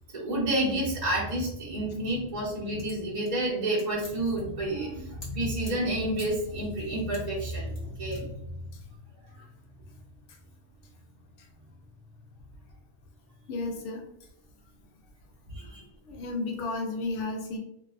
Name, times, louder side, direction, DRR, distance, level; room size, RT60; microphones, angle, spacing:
voice 1, 0.1-8.3 9.3-9.4 15.5-15.8, right 1 dB, 40° right, -8 dB, 0.8 m, -30 dB
sound 1, 2.0-5.8 6.2-6.4 6.8-7.8 8.1-8.2, left 2 dB, 40° left, 1.0 m, -48 dB
voice 2, 13.5-14.0 15.6-15.7 16.1-17.6, left 2 dB, 80° left, 2 dB, 0.9 m, -33 dB
2.6 x 2.3 x 2.3 m, 0.80 s
omnidirectional pair, 1.2 m